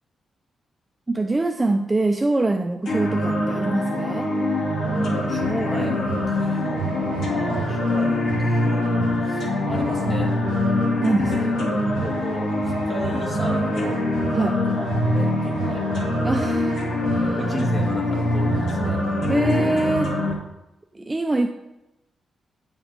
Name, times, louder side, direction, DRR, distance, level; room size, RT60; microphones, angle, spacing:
voice 1, 1.1-4.3 11.0-11.5 14.3-14.6 16.2-16.8 17.1-17.4 19.3-20.1 20.9-21.5, right 2 dB, 15° right, 4 dB, 0.4 m, -24 dB
sound 1, 2.9-20.3, left 1 dB, 70° left, 2.4 m, -24 dB
sound 2, 4.8-20.0, right 6 dB, 90° right, 0.9 m, -34 dB
voice 2, 5.3-6.9 7.2-10.3 11.3-11.5 12.0-15.9 17.2-19.0, equal, 20° left, -1 dB, 1.8 m, -33 dB
10.0 x 7.3 x 3.5 m, 0.92 s
wide cardioid pair, 165°, 0 cm